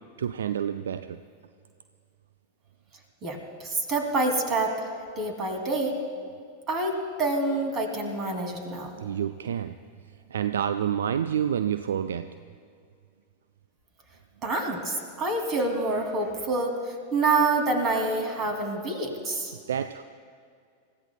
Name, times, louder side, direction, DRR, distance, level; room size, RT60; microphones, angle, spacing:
voice 1, 0.2-1.2 9.0-9.8 10.3-12.3 19.7-20.0, right 9 dB, 65° right, 11 dB, 0.3 m, -28 dB
voice 2, 3.2-4.9 5.2-6.0 6.7-8.9 14.4-19.6, right 2 dB, 30° right, 3 dB, 2.6 m, -27 dB
28.5 x 15.5 x 2.3 m, 2.3 s
figure-of-eight pair, 90°, 0 cm